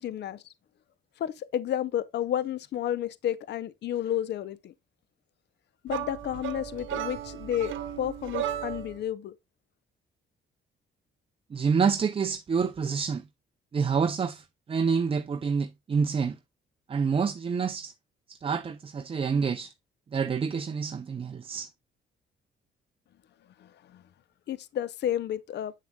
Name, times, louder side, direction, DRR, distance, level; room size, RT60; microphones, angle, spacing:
voice 1, 0.0-0.4 1.2-4.7 5.8-9.3 23.6-24.0 24.5-25.7, left 11 dB, 60° left, 0.6 m, -31 dB
sound 1, 5.9-9.0, right 11 dB, 75° right, 0.9 m, -35 dB
voice 2, 11.5-13.2 13.7-16.4 16.9-17.9 18.3-19.7 20.1-21.7, right 5 dB, 30° right, 0.5 m, -27 dB
7.4 x 7.1 x 2.2 m
cardioid pair, 90°, 20 cm